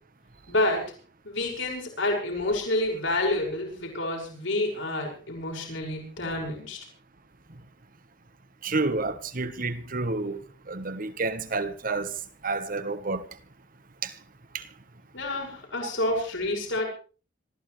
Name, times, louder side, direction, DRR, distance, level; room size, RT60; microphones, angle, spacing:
voice 1, 0.5-0.9 1.2-6.8 15.1-16.9, left 1 dB, 80° left, 6.2 m, -28 dB
voice 2, 8.6-12.1 12.4-13.2 14.0-14.1 14.5-14.6, right 3 dB, 45° right, 1.2 m, -29 dB
26.5 x 14.5 x 3.3 m
head